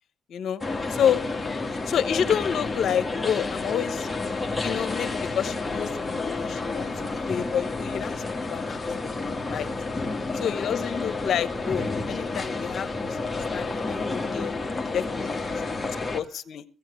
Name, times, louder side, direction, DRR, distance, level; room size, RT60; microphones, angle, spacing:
voice 1, 0.3-0.6 0.9-1.2 1.9-4.1 4.6-6.9 7.3-8.1 8.5-8.8 9.5-9.7 10.3-14.5 14.9-15.2 15.7-15.8 16.1-16.6, left 9 dB, 65° left, 12 dB, 1.0 m, -28 dB
sound 1, 0.6-16.2, left 3 dB, 15° left, 1.7 m, -30 dB
voice 2, 9.6-10.4 14.6-16.4, right 3 dB, 40° right, 4 dB, 6.9 m, -51 dB
16.5 x 15.5 x 3.3 m, 0.34 s
cardioid pair, 90°, 0 cm